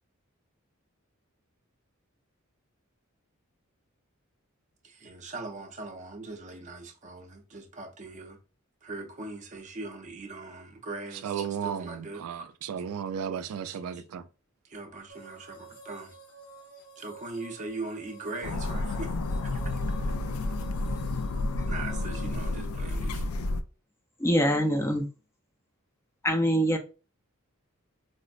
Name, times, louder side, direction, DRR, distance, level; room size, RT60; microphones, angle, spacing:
voice 1, 4.8-8.4 8.8-12.5 13.7-14.0 14.6-16.1 17.0-19.8 21.7-23.3, right 3 dB, 35° right, 0.6 m, -41 dB
voice 2, 11.2-14.2, right 8 dB, 85° right, 0.3 m, -34 dB
sound 1, 15.1-22.5, right 3 dB, 45° left, 0.8 m, -49 dB
sound 2, 18.4-23.6, left 2 dB, 85° left, 0.3 m, -30 dB
voice 3, 24.2-25.0 26.2-26.8, equal, 10° left, 0.4 m, -24 dB
4.2 x 2.0 x 2.4 m
head